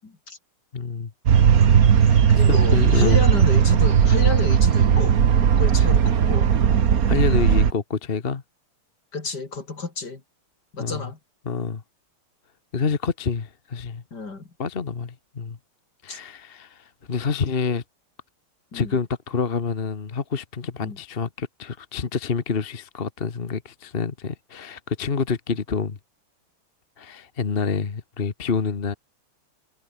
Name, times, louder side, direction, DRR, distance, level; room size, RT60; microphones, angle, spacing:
voice 1, 0.0-0.4 2.3-6.5 9.1-10.2 10.7-11.2 14.1-14.4 16.1-16.2 18.7-18.9 20.8-21.0, left 4 dB, 50° left, 4.2 m, -31 dB
voice 2, 0.7-1.1 2.0-3.2 7.1-8.4 10.8-11.1 11.4-11.8 12.7-14.0 14.6-15.6 16.0-17.8 18.7-26.0 27.0-28.9, left 5 dB, 30° left, 1.2 m, -27 dB
sound 1, 1.3-7.7, right 7 dB, 45° right, 1.5 m, -17 dB
omnidirectional pair, 2.4 m